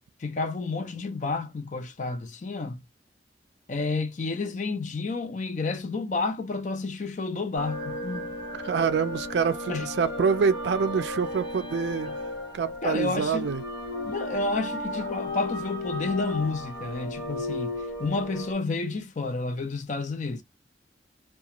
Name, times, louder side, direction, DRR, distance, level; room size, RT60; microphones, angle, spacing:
voice 1, 0.2-2.8 3.7-8.4 9.7-9.9 12.1-12.2 12.8-13.5 14.1-20.4, left 3 dB, 45° left, 0.5 m, -30 dB
sound 1, 7.6-18.5, left 1 dB, 85° left, 1.2 m, -34 dB
voice 2, 8.6-12.1 12.5-13.6, right 6 dB, 70° right, 0.3 m, -26 dB
2.4 x 2.3 x 2.9 m
head